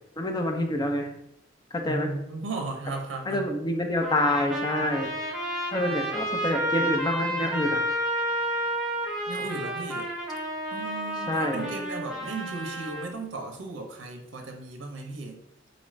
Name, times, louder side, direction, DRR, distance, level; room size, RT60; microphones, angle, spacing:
voice 1, 0.2-1.1 1.7-2.1 3.3-5.1 5.7-7.8 11.3-11.7, left 1 dB, 20° left, 3 dB, 0.4 m, -27 dB
voice 2, 1.8-3.5 9.3-10.1 10.7-15.4, right 3 dB, 70° right, 3 dB, 0.6 m, -36 dB
Trumpet, 4.0-13.1, right 1 dB, ahead, 0.8 m, -31 dB
4.0 x 2.4 x 3.1 m, 0.76 s
head